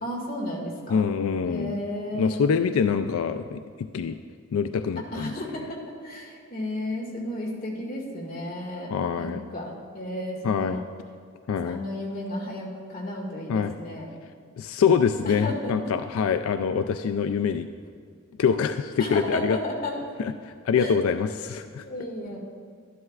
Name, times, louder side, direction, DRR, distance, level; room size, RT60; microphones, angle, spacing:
voice 1, 0.0-1.0 1.4-2.5 5.1-5.8 6.0-8.9 9.2-10.8 11.5-14.0 15.3-15.7 19.0-19.9 20.7-20.9 21.8-22.4, left 1 dB, 45° left, -2 dB, 1.9 m, -33 dB
voice 2, 0.9-1.8 2.1-4.2 4.5-5.3 8.9-9.4 10.4-10.8 11.5-11.8 13.5-13.7 14.6-17.7 18.4-19.6 20.2-21.9, left 6 dB, 90° left, 8 dB, 0.3 m, -25 dB
12.5 x 11.0 x 2.4 m, 2.1 s
head